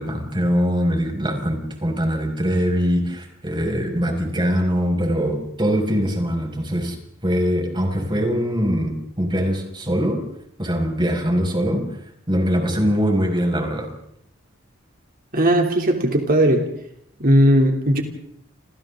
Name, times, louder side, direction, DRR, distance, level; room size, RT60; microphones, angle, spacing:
voice 1, 0.0-7.0 7.2-10.2 10.6-11.8 12.3-13.9, equal, 25° right, 2 dB, 5.8 m, -22 dB
voice 2, 15.3-16.7 17.2-18.0, equal, 45° right, 2 dB, 3.1 m, -17 dB
30.0 x 28.0 x 3.8 m, 0.70 s
head